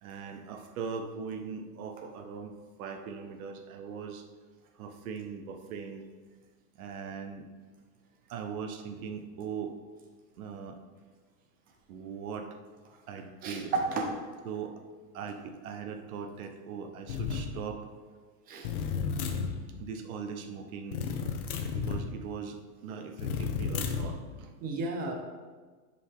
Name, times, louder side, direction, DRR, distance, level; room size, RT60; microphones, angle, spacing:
voice 1, 0.0-4.3 4.7-6.0 6.7-7.5 8.3-9.7 10.4-10.8 11.9-12.5 13.1-13.7 14.4-14.8 15.1-17.9 19.8-21.1 21.7-24.5, right 6 dB, 60° right, 6 dB, 1.1 m, -40 dB
voice 2, 13.4-14.1 18.5-18.7 24.6-25.1, right 3 dB, 20° right, 2 dB, 0.8 m, -32 dB
sound 1, 17.1-17.5 18.6-19.5 20.9-22.0 23.2-24.1, left 6 dB, 60° left, 1.2 m, -32 dB
10.0 x 5.3 x 3.6 m, 1.4 s
supercardioid pair, 160°, 47 cm